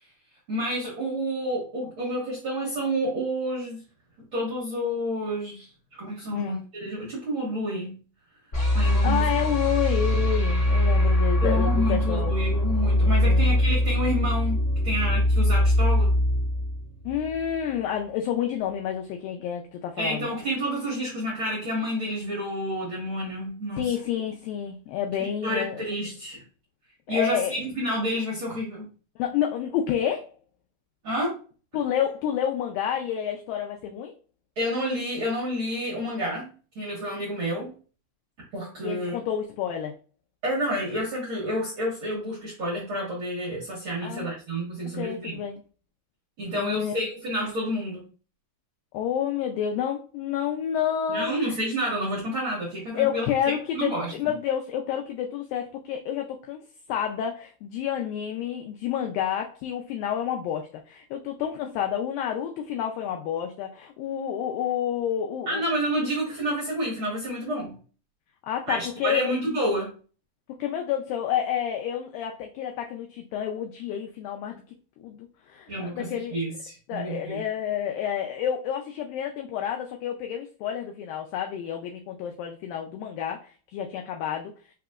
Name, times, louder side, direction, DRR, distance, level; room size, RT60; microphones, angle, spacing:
voice 1, 0.5-3.8 4.3-5.7 6.0-8.0 8.7-9.3 11.4-16.2 20.0-23.9 25.2-26.4 27.1-28.9 31.0-31.3 34.5-36.5 36.7-37.7 38.5-39.1 40.4-45.4 46.4-48.1 51.1-53.2 53.7-54.1 65.5-67.8 68.7-69.9 75.7-77.4, equal, 80° right, -4 dB, 1.1 m, -29 dB
sound 1, 8.5-17.6, left 1 dB, 60° left, 0.7 m, -22 dB
voice 2, 9.0-12.3 13.3-13.5 17.1-20.3 23.8-25.8 27.1-27.5 29.2-30.3 31.7-34.2 38.8-40.0 44.0-44.3 44.9-45.6 46.5-47.1 48.9-51.6 53.0-56.6 56.9-65.6 68.5-69.5 70.6-74.6 75.0-76.4 76.9-84.5, left 9 dB, 90° left, 2 dB, 2.0 m, -29 dB
5.9 x 2.8 x 2.3 m, 0.37 s
omnidirectional pair, 4.6 m